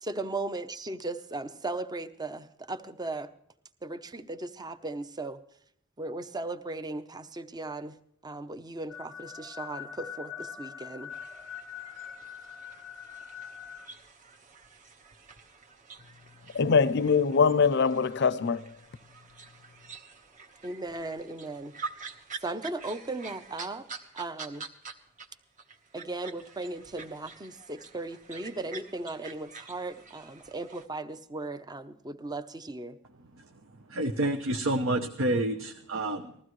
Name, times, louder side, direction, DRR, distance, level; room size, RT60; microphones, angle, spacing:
voice 1, 0.0-3.3 3.8-5.4 6.0-8.0 8.2-11.1 20.6-21.7 22.4-23.9 24.1-24.7 25.9-33.0, right 2 dB, 20° right, 0.7 m, -37 dB
sound 1, 8.9-13.9, left 8 dB, ahead, 1.0 m, -43 dB
sound 2, 11.1-25.3 25.6-30.9, right 4 dB, 40° right, 1.3 m, -47 dB
voice 2, 16.5-18.8, left 5 dB, 55° left, 0.5 m, -23 dB
voice 3, 33.3-36.4, right 1 dB, 65° right, 0.9 m, -29 dB
20.0 x 15.0 x 3.2 m
head